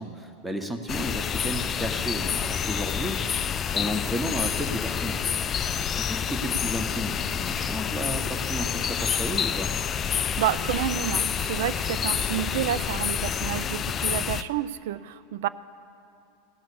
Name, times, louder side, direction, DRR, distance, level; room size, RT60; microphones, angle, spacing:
voice 1, 0.0-5.3 6.0-9.7, equal, 5° right, 5 dB, 1.1 m, -33 dB
sound 1, 0.9-14.4, left 8 dB, 30° left, 0.4 m, -28 dB
voice 2, 10.1-15.5, right 12 dB, 60° right, 16 dB, 0.4 m, -29 dB
17.0 x 6.2 x 6.9 m, 2.8 s
figure-of-eight pair, 85°, 0 cm